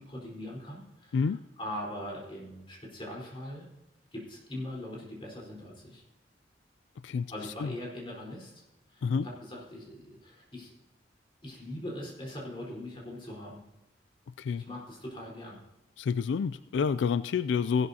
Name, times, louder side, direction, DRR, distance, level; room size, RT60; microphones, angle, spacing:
voice 1, 0.0-3.7 4.1-6.0 7.3-8.6 8.9-10.7 11.4-13.6 14.6-15.6, left 1 dB, 30° left, -3 dB, 4.2 m, -41 dB
voice 2, 16.0-17.9, left 6 dB, 80° left, 15 dB, 0.3 m, -28 dB
16.0 x 12.0 x 2.8 m, 0.96 s
head